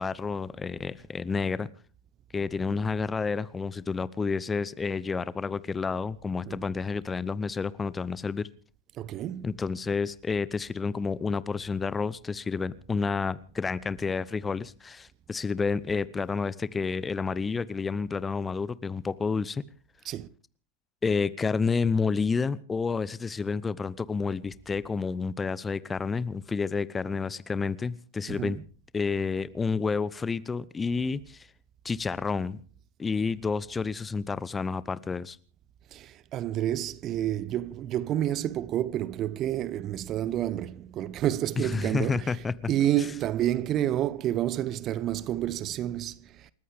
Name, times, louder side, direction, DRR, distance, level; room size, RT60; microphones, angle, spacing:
voice 1, 0.0-1.7 2.3-8.5 9.4-19.6 21.0-28.6 28.9-31.5 31.8-32.6 33.0-35.4 41.7-42.5, left 5 dB, 15° left, 0.7 m, -30 dB
voice 2, 9.0-9.6 20.0-20.3 28.3-28.6 35.9-46.2, right 12 dB, 30° right, 0.8 m, -29 dB
29.0 x 14.0 x 3.5 m
figure-of-eight pair, 90°, 0 cm